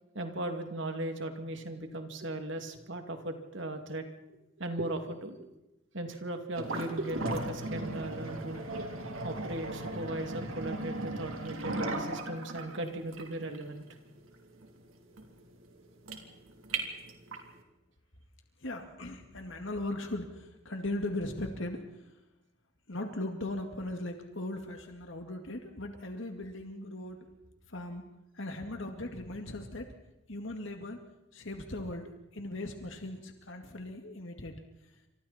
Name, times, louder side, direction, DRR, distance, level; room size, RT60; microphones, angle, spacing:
voice 1, 0.1-5.4 5.9-8.6 9.2-13.8, right 1 dB, 60° right, 5 dB, 2.6 m, -37 dB
sound 1, 6.5-17.5, right 2 dB, 80° right, 3.4 m, -37 dB
voice 2, 18.6-22.1 22.9-27.3 27.7-28.1 28.3-29.9 30.3-31.0 31.3-34.6, left 1 dB, 65° left, 4 dB, 2.2 m, -38 dB
29.0 x 26.0 x 4.4 m, 0.96 s
head